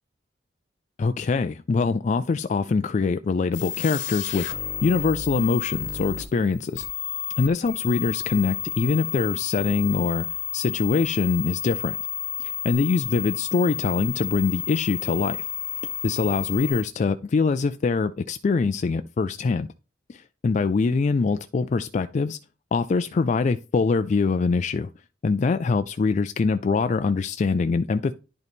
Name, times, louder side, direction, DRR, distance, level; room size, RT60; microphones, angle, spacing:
voice 1, 1.0-4.5 4.8-6.9 7.4-10.3 10.5-12.0 12.4-15.4 16.0-19.7 20.1-22.4 22.7-24.9 25.2-28.1, left 4 dB, 40° left, 0.3 m, -24 dB
sound 1, 3.5-16.8, left 10 dB, 90° left, 1.1 m, -31 dB
10.5 x 3.9 x 3.5 m
head